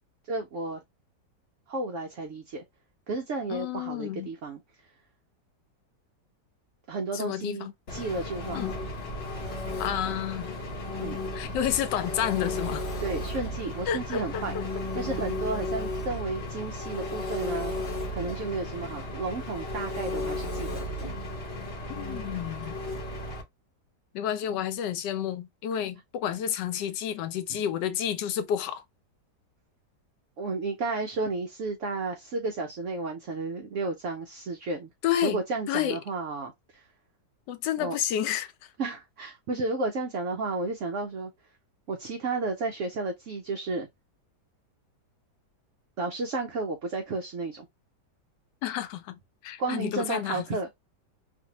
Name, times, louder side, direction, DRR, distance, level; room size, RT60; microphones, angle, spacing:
voice 1, 0.3-0.8 1.7-2.6 3.1-4.6 6.9-8.7 11.0-11.2 13.0-14.5 14.9-17.7 18.1-20.9 27.5-27.6 30.4-34.9 35.2-36.8 37.8-38.0 38.8-41.3 41.9-43.9 46.0-47.7 49.6-50.7, right 3 dB, 85° right, 0.6 m, -32 dB
voice 2, 3.5-4.3 7.1-7.7 8.5-8.7 9.8-10.5 11.3-12.9 13.9-14.6 21.9-22.8 24.1-28.8 35.0-35.4 35.7-36.0 37.5-38.5 48.6-50.6, left 10 dB, 85° left, 1.2 m, -30 dB
Engine, 7.9-23.4, left 1 dB, 50° left, 0.8 m, -34 dB
2.6 x 2.5 x 2.7 m
omnidirectional pair, 1.9 m